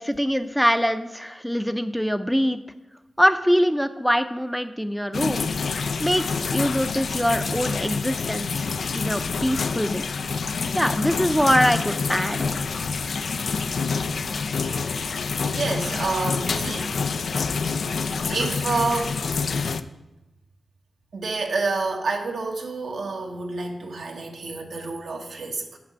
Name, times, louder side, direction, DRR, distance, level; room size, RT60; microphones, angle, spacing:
voice 1, 0.0-2.6 3.2-5.5 6.0-8.7 8.9-10.0 10.7-12.6, equal, ahead, 10 dB, 0.5 m, -23 dB
sound 1, 5.1-19.8, left 5 dB, 75° left, 0.4 m, -27 dB
voice 2, 15.5-16.9 18.3-19.2 21.1-25.8, right 3 dB, 75° right, 3 dB, 1.2 m, -28 dB
6.8 x 4.8 x 6.8 m, 1.0 s
cardioid pair, 45°, 0 cm